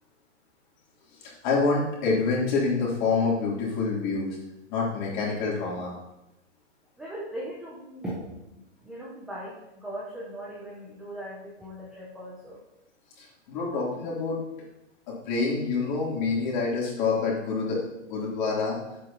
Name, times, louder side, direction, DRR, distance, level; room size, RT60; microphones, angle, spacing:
voice 1, 1.2-4.4 4.7-5.9 13.2-14.4 15.1-17.8 18.1-18.8, left 4 dB, 40° left, -4 dB, 3.2 m, -27 dB
voice 2, 7.0-8.3 8.8-12.6, right 1 dB, ahead, -7 dB, 0.5 m, -39 dB
10.0 x 8.1 x 2.9 m, 0.91 s
hypercardioid pair, 150°, 37 cm